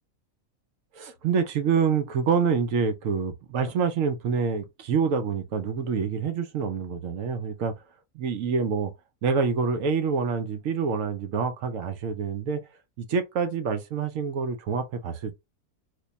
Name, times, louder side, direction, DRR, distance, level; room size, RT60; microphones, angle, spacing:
voice 1, 0.9-7.8 8.1-8.9 9.2-12.6 13.0-15.3, right 5 dB, 65° right, 1.0 m, -26 dB
3.2 x 2.3 x 3.9 m
omnidirectional pair, 1.5 m